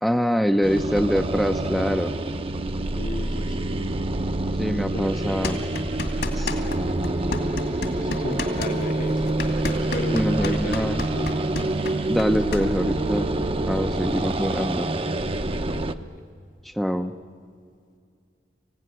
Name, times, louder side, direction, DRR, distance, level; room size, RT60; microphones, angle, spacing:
voice 1, 0.0-2.1 4.6-5.6 6.3-6.6 10.1-11.0 12.1-13.3 13.7-14.9 16.6-17.1, equal, ahead, 6 dB, 0.6 m, -24 dB
sound 1, 0.6-15.9, right 2 dB, 30° right, 0.8 m, -26 dB
voice 2, 2.9-3.9 4.9-5.3 6.5-7.0 7.9-9.4 9.9-11.3 12.3-12.4 16.0-16.2, left 1 dB, 45° left, 7 dB, 1.1 m, -35 dB
sound 2, 5.4-6.8 7.0-12.6, left 2 dB, 65° left, 2.7 m, -31 dB
25.5 x 16.5 x 9.9 m, 2.2 s
head